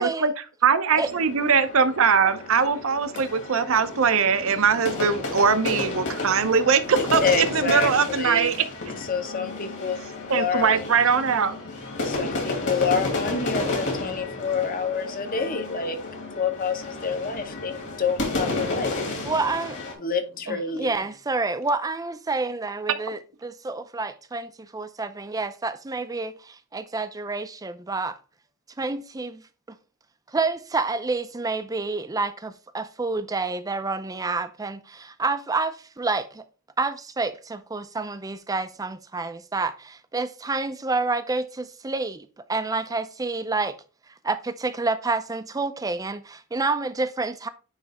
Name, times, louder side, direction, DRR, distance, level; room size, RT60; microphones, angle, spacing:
voice 1, 0.0-0.3 0.6-8.6 10.3-11.6 12.9-13.0 22.9-23.0, right 6 dB, 65° right, 0.6 m, -21 dB
sound 1, 0.9-19.9, left 2 dB, 55° left, 2.3 m, -32 dB
voice 2, 7.0-8.5 9.1-10.0 10.3-10.9 12.0-16.0 16.4-18.9 20.0-21.0, left 5 dB, 40° left, 0.9 m, -27 dB
voice 3, 19.2-19.8 20.5-28.2 28.8-29.4 30.3-36.4 36.8-43.8 44.2-47.5, right 3 dB, 15° right, 0.4 m, -28 dB
9.7 x 3.2 x 3.5 m
head